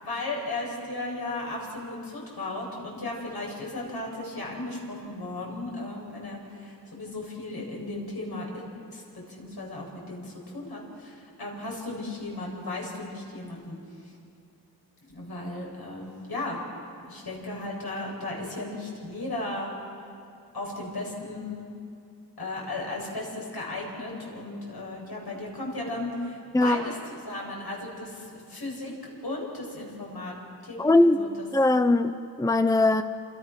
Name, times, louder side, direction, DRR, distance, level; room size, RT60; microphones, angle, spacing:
voice 1, 0.0-13.8 15.0-16.6 17.1-19.7 20.5-21.6 22.4-27.0 27.3-30.3 30.6-31.5, left 2 dB, 65° left, -2 dB, 7.9 m, -35 dB
voice 2, 26.5-26.8 30.8-31.2 31.5-33.0, left 2 dB, 10° left, 9 dB, 0.8 m, -21 dB
30.0 x 27.5 x 6.5 m, 2.4 s
wide cardioid pair, 90°, 40 cm